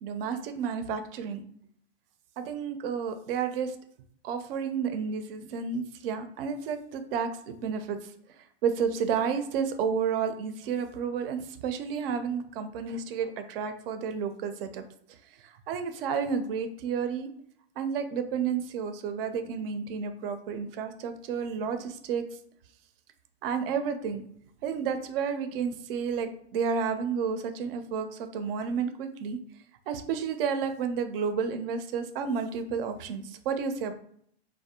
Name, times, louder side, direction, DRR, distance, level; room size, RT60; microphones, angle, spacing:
voice 1, 0.0-1.4 2.4-3.8 4.2-8.1 8.6-14.8 15.4-17.3 17.8-22.2 23.4-24.2 24.6-29.4 29.9-33.9, right 6 dB, 60° right, 8 dB, 0.5 m, -31 dB
2.4 x 2.1 x 2.7 m, 0.66 s
hypercardioid pair, 120°, 32 cm